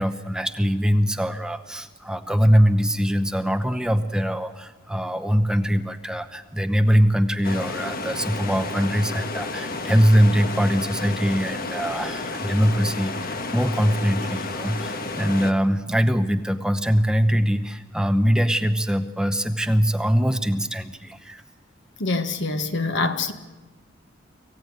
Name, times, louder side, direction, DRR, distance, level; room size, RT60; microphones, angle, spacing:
voice 1, 0.0-21.4, equal, 5° right, 0.8 m, -22 dB
sound 1, 7.4-15.5, left 3 dB, 50° left, 1.4 m, -31 dB
voice 2, 22.0-23.3, left 3 dB, 65° left, 1.6 m, -25 dB
25.5 x 16.0 x 9.5 m
head